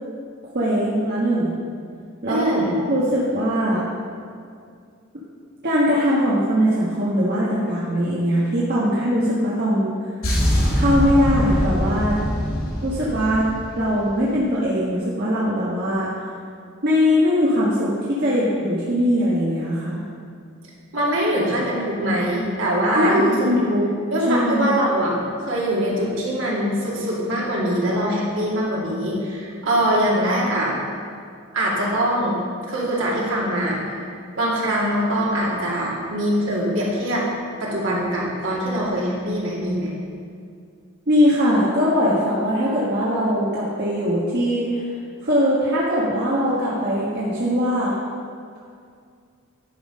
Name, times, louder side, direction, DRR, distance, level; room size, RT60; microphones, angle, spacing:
voice 1, 0.5-1.6 2.2-2.5 2.9-3.9 5.6-9.9 10.7-12.1 12.8-13.5 13.7-16.1 16.8-20.0 22.9-23.9 24.3-24.7 41.1-44.8 45.2-48.0, equal, 55° right, -7 dB, 1.4 m, -21 dB
voice 2, 2.3-2.7 20.9-23.5 24.1-30.7 31.5-32.4 32.6-34.1 34.4-37.3 37.6-39.9, equal, 70° right, -5 dB, 2.5 m, -23 dB
sound 1, 10.2-14.3, equal, 90° left, 2.7 m, -23 dB
11.0 x 6.0 x 5.2 m, 2.3 s
head